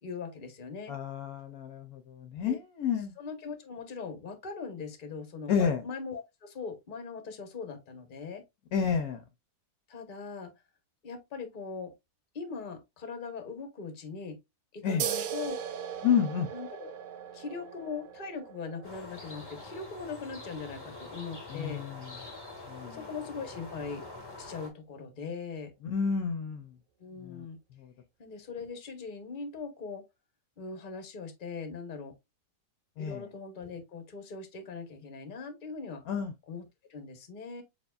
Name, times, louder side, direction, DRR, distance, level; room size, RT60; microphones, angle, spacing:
voice 1, 0.0-0.9 2.5-2.6 3.2-8.4 9.9-10.5 11.0-11.9 12.3-14.4 14.7-15.6 16.5-16.9 17.3-21.8 22.9-24.1 24.4-25.7 27.0-27.6 28.2-30.0 30.6-32.1 33.0-36.0 36.5-37.6, left 5 dB, 35° left, 0.9 m, -40 dB
voice 2, 0.9-3.1 5.5-5.8 8.7-9.2 14.8-15.0 16.0-16.5 21.5-22.0 22.7-23.0 25.8-26.7 27.2-27.5 33.0-33.2 36.1-36.3, left 7 dB, 65° left, 1.0 m, -30 dB
sound 1, 15.0-22.1, right 9 dB, 70° right, 1.0 m, -40 dB
sound 2, 18.8-24.7, left 2 dB, 15° left, 1.1 m, -45 dB
6.7 x 2.8 x 2.3 m
omnidirectional pair, 1.9 m